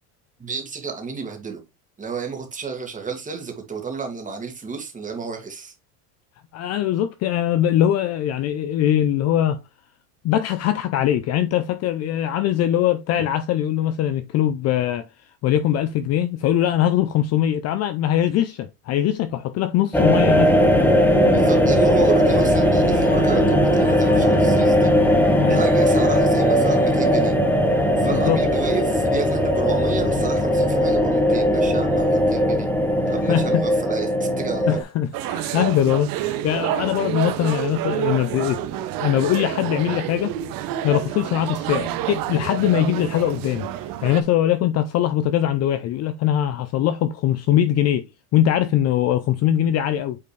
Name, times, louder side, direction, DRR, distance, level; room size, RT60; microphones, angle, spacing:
voice 1, 0.4-1.6 2.0-5.7 21.3-24.9 25.5-27.4 28.0-32.7 33.1-34.8, right 5 dB, 15° right, 2.0 m, -31 dB
voice 2, 6.5-9.6 10.2-15.1 15.4-20.5 25.4-25.6 28.0-28.4 33.3-33.6 34.7-38.7 39.0-40.4 40.8-43.7 44.0-48.0 48.3-50.2, left 11 dB, 35° left, 0.5 m, -21 dB
sound 1, 19.9-34.8, equal, 5° left, 1.1 m, -18 dB
sound 2, 35.1-44.2, right 12 dB, 45° right, 1.0 m, -28 dB
8.6 x 4.3 x 3.2 m
supercardioid pair, 135°, 46 cm